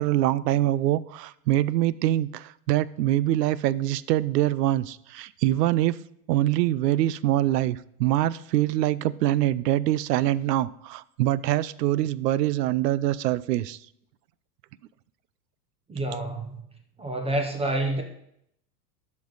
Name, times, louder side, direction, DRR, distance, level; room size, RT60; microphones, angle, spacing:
voice 1, 0.0-6.0 6.3-13.8, right 14 dB, 75° right, 0.6 m, -24 dB
voice 2, 15.9-16.6 17.0-18.0, right 1 dB, 10° right, 0.7 m, -28 dB
13.0 x 5.4 x 4.0 m
supercardioid pair, 135°, 48 cm